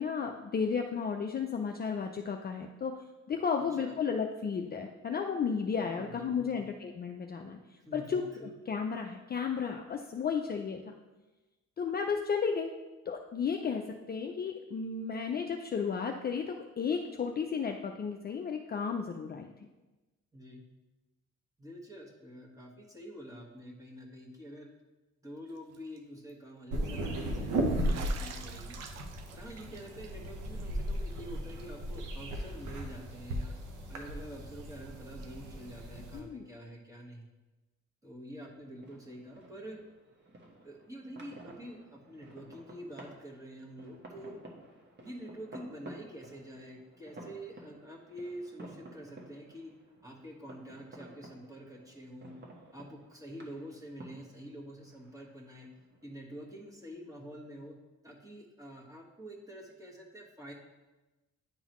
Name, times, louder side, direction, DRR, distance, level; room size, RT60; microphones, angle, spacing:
voice 1, 0.0-10.9 11.8-12.7 13.1-19.5 36.1-36.4, left 6 dB, 30° left, 3 dB, 0.5 m, -33 dB
voice 2, 3.6-3.9 5.8-6.6 7.8-8.5 20.3-20.6 21.6-24.7 25.2-28.8 29.3-33.5 33.9-37.3 38.0-39.8 40.6-44.4 45.0-49.7 50.0-52.3 52.7-55.7 56.0-57.7 58.0-60.5, equal, 10° right, -2 dB, 1.5 m, -47 dB
Bathtub (filling or washing), 25.6-26.0 26.3-26.4 27.8-31.2 31.5-31.6 31.9-32.0 33.4-33.5 35.2-35.3, right 6 dB, 60° right, 0.7 m, -48 dB
sound 1, 26.7-36.2, right 1 dB, 80° right, 1.0 m, -36 dB
sound 2, 38.4-57.7, right 2 dB, 35° right, 1.4 m, -53 dB
10.5 x 3.9 x 3.1 m, 1.1 s
cardioid pair, 90°, 30 cm